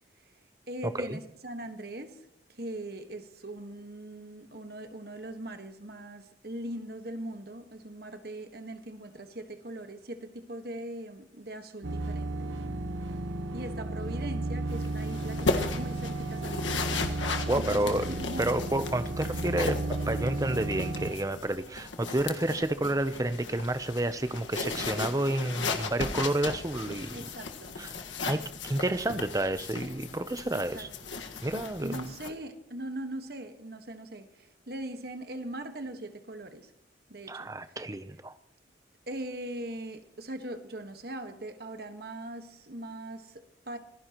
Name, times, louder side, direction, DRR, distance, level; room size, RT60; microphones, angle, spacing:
voice 1, 0.7-12.6 13.5-18.5 27.1-27.9 30.5-31.3 31.8-36.7 37.1-37.8 39.1-43.8, right 1 dB, 55° right, 1.5 m, -41 dB
sound 1, 11.8-21.1, right 2 dB, 90° right, 1.1 m, -34 dB
sound 2, 14.7-32.3, left 3 dB, 85° left, 1.6 m, -36 dB
voice 2, 17.5-27.2 27.8-27.9 28.2-30.9 31.4-32.0 37.3-38.3, right 1 dB, 20° right, 0.6 m, -30 dB
25.5 x 16.5 x 3.0 m
head